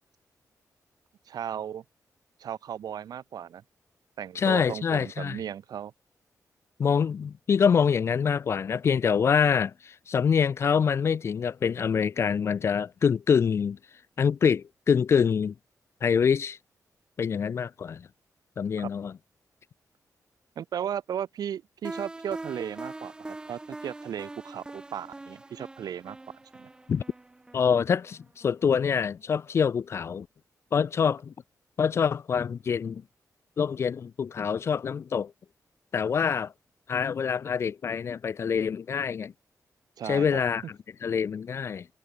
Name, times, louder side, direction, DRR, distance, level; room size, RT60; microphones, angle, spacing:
voice 1, 1.3-1.8 2.4-3.6 4.2-5.9 18.8-18.9 20.6-26.2 26.6-26.7 40.0-40.4, right 9 dB, 75° right, 0.9 m, -35 dB
voice 2, 4.4-5.4 6.8-13.8 14.2-15.5 16.0-16.6 17.2-18.1 18.6-19.1 26.9-27.0 27.5-30.3 30.7-31.3 31.8-33.0 33.6-35.3 35.9-36.5 36.9-39.3 40.1-41.9, left 6 dB, 40° left, 0.3 m, -25 dB
sound 1, 21.8-28.6, right 2 dB, 15° right, 0.5 m, -43 dB
wide cardioid pair, 175°, 7 cm